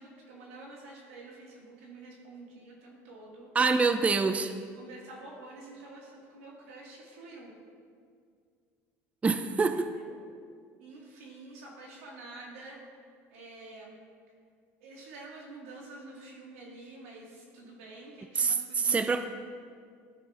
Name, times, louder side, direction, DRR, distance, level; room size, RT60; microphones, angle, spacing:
voice 1, 0.0-3.5 4.0-4.1 4.7-7.6 9.7-10.2 10.8-12.8 13.3-14.0 14.8-19.3, right 2 dB, 90° right, -2 dB, 1.9 m, -48 dB
voice 2, 3.6-4.5 9.2-9.9 18.4-19.3, right 4 dB, 20° right, 9 dB, 0.4 m, -26 dB
14.0 x 6.0 x 2.5 m, 2.2 s
supercardioid pair, 95°, 7 cm